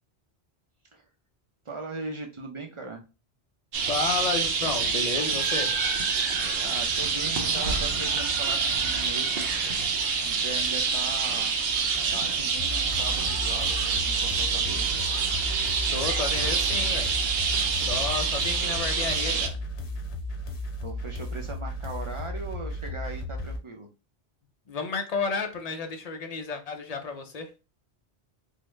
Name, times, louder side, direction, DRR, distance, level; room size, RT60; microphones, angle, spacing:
voice 1, 1.7-3.0 6.6-9.5 10.2-11.5 12.1-14.9 20.8-23.9, right 3 dB, 40° right, 0.5 m, -39 dB
sound 1, 3.7-19.5, right 5 dB, 70° right, 0.8 m, -26 dB
voice 2, 3.8-5.8 15.9-17.1 17.7-19.6 24.7-27.5, left 4 dB, 45° left, 0.5 m, -32 dB
sound 2, 12.6-23.6, left 1 dB, 85° left, 1.0 m, -35 dB
3.6 x 2.1 x 3.1 m
omnidirectional pair, 1.1 m